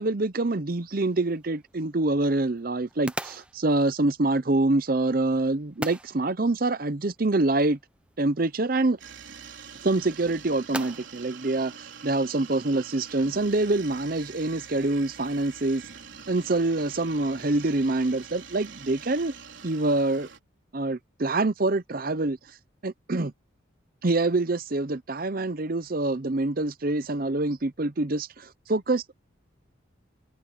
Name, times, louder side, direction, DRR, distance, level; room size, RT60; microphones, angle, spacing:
voice 1, 0.0-7.8 8.2-9.0 9.8-15.8 16.3-19.3 19.6-20.3 20.7-22.4 22.8-23.3 24.0-29.2, right 2 dB, 45° right, 0.7 m, -26 dB
sound 1, 0.9-12.6, right 1 dB, 5° right, 0.6 m, -43 dB
sound 2, 9.0-20.4, right 6 dB, 65° right, 3.9 m, -45 dB
head